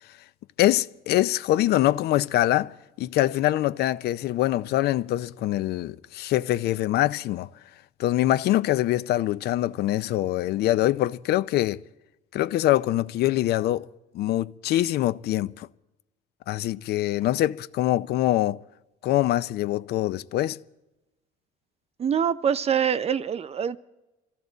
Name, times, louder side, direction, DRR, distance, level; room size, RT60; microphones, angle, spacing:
voice 1, 0.6-2.7 3.0-7.5 8.0-11.8 12.3-13.9 14.1-15.7 16.5-18.6 19.0-20.6, left 14 dB, 70° left, 0.6 m, -24 dB
voice 2, 22.0-23.8, right 8 dB, 40° right, 0.7 m, -24 dB
24.5 x 14.5 x 4.0 m
cardioid pair, 110°, 17 cm